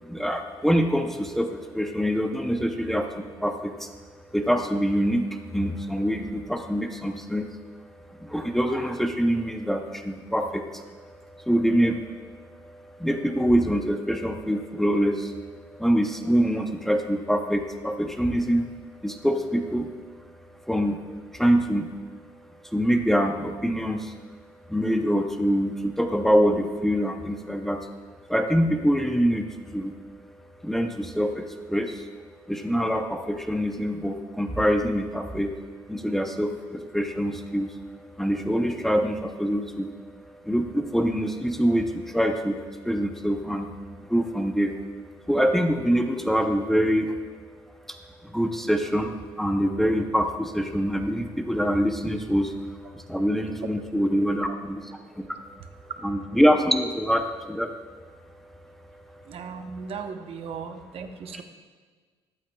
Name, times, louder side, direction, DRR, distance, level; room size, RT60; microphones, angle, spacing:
voice 1, 0.0-3.9 4.3-7.5 8.1-18.7 19.0-19.9 20.7-21.0 21.3-21.9 22.6-24.2 24.7-27.9 28.3-29.5 29.7-30.0 30.6-32.1 32.4-35.6 35.9-39.9 40.3-42.6 42.8-43.7 44.0-44.8 45.3-47.2 47.9-48.0 48.2-54.8 55.2-55.3 56.0-57.7 58.9-59.2, equal, 5° left, 4 dB, 0.7 m, -25 dB
voice 2, 54.1-54.6 59.2-61.4, right 6 dB, 60° right, 6 dB, 0.9 m, -37 dB
14.0 x 11.5 x 2.3 m, 1.5 s
cardioid pair, 110°, 11 cm